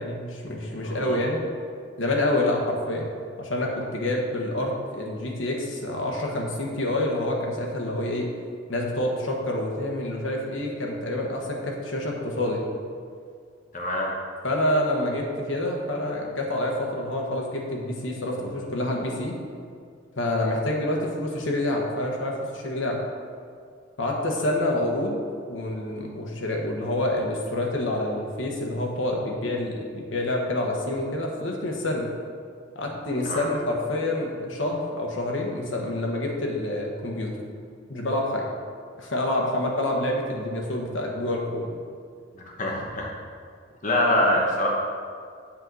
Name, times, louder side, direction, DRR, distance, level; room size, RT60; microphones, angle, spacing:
voice 1, 0.0-1.4 2.0-3.1 3.4-8.3 8.7-12.6 14.4-19.4 20.2-23.0 24.0-25.2 25.5-32.1 32.7-37.4 37.9-38.4 39.0-41.7 44.2-44.3, left 1 dB, 80° left, 0 dB, 1.3 m, -27 dB
voice 2, 0.8-1.2 13.7-14.1 33.3-33.5 42.4-43.1 43.8-44.7, left 1 dB, 40° left, -2 dB, 1.1 m, -24 dB
7.6 x 6.1 x 4.1 m, 2.2 s
head